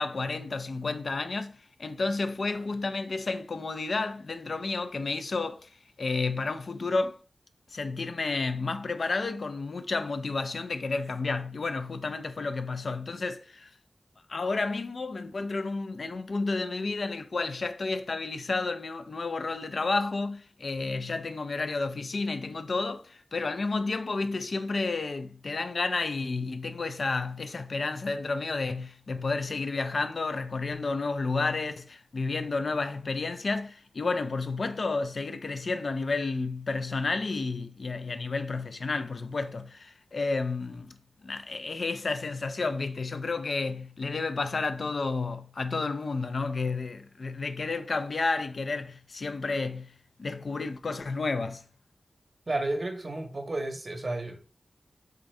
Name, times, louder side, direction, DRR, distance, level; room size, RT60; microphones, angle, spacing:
voice 1, 0.0-1.5 1.8-5.7 6.0-7.2 7.7-13.7 14.3-40.9 41.2-49.9 50.2-51.6, left 3 dB, 65° left, 0.3 m, -31 dB
voice 2, 52.5-54.4, right 2 dB, 45° right, 0.7 m, -32 dB
3.6 x 2.6 x 3.1 m
wide cardioid pair, 90°, 0 cm